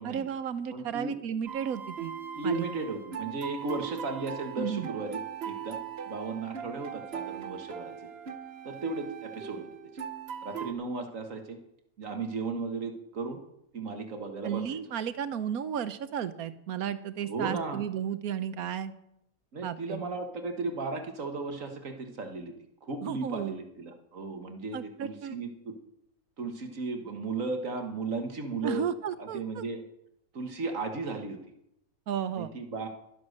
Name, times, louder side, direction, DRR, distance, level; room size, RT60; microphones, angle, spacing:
voice 1, 0.0-2.1 2.4-2.7 4.6-4.9 14.4-18.9 19.6-20.0 23.0-23.6 24.7-25.4 28.6-29.6 32.1-32.5, right 8 dB, 90° right, 13 dB, 1.3 m, -33 dB
voice 2, 0.7-1.1 2.4-5.8 6.1-7.9 8.6-9.7 10.4-11.6 12.0-13.4 13.7-14.8 17.2-17.8 19.5-22.5 22.8-25.7 26.4-28.9 29.2-29.8 30.3-31.4 32.3-32.9, right 3 dB, 65° right, 5 dB, 1.8 m, -35 dB
sound 1, 1.5-10.7, right 8 dB, 50° right, 1.1 m, -40 dB
12.5 x 11.5 x 6.5 m, 0.80 s
omnidirectional pair, 1.5 m